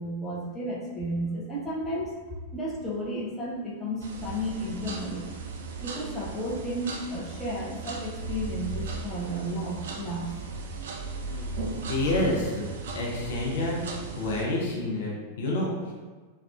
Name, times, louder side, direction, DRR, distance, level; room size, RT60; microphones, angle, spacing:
voice 1, 0.0-2.1 2.5-5.3 5.8-10.3, equal, 10° left, -6 dB, 0.6 m, -33 dB
sound 1, 4.0-14.5, right 4 dB, 60° right, 0.3 m, -37 dB
voice 2, 11.9-12.7 12.9-13.8 14.2-15.9, left 2 dB, 60° left, -3 dB, 0.5 m, -28 dB
3.4 x 2.3 x 2.4 m, 1.4 s
figure-of-eight pair, 90°, 0 cm